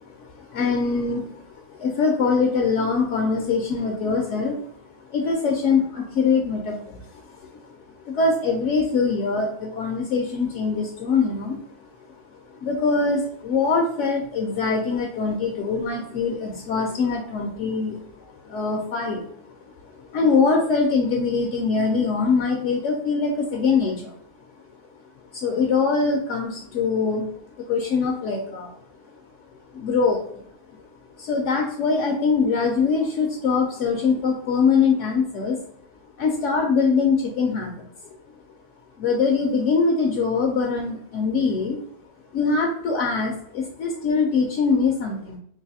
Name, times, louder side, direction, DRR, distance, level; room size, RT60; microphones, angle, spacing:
voice 1, 0.0-4.7 5.0-7.8 8.0-12.2 12.5-19.5 19.8-24.1 25.3-27.3 27.7-28.8 29.7-30.8 31.2-35.6 36.2-37.9 39.0-41.8 42.3-45.4, left 4 dB, 70° left, 1 dB, 0.9 m, -23 dB
3.9 x 2.5 x 2.7 m, 0.66 s
omnidirectional pair, 1.4 m